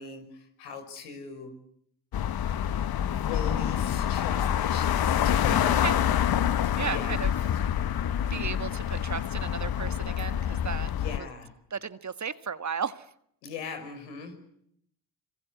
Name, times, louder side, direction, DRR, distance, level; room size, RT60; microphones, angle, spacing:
voice 1, 0.0-1.5 3.0-6.0 6.5-7.6 10.9-11.5 13.4-14.4, left 5 dB, 75° left, 6 dB, 6.1 m, -39 dB
sound 1, 2.1-11.2, left 10 dB, 50° left, 1.2 m, -27 dB
voice 2, 6.7-7.3 8.3-10.9 11.2-11.3 11.7-13.1, right 6 dB, 35° right, 12 dB, 1.7 m, -34 dB
26.0 x 26.0 x 8.4 m, 0.71 s
hypercardioid pair, 45°, 48 cm